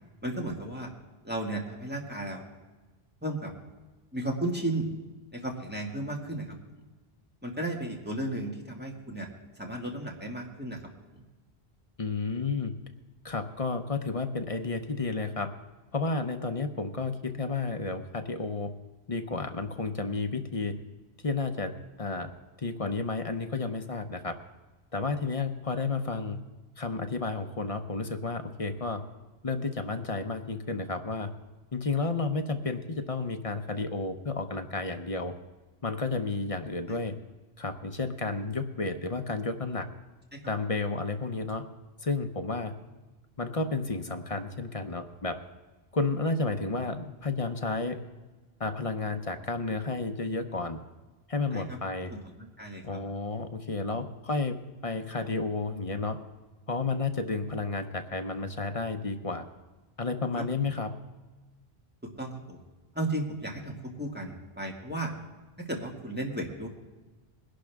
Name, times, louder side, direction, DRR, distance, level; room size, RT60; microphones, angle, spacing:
voice 1, 0.2-0.9 1.2-2.4 3.2-3.5 4.1-4.9 5.3-6.6 7.4-9.3 9.6-10.8 40.3-40.4 51.5-51.6 52.1-53.0 53.9-54.0 62.2-62.6 63.0-65.1 65.7-66.7, right 1 dB, 10° right, -1 dB, 2.0 m, -34 dB
voice 2, 12.0-12.7 13.2-15.5 15.9-18.7 19.1-20.8 21.2-22.3 22.6-24.4 24.9-26.4 26.8-29.0 29.4-31.3 31.7-35.4 35.8-37.1 37.6-39.9 40.5-41.6 42.0-42.7 43.4-45.4 45.9-48.0 48.6-50.8 51.3-52.1 52.8-54.6 54.8-56.2 56.7-59.5 60.0-60.9, left 3 dB, 35° left, 7 dB, 0.8 m, -31 dB
21.0 x 11.5 x 3.5 m, 1.2 s
omnidirectional pair, 1.0 m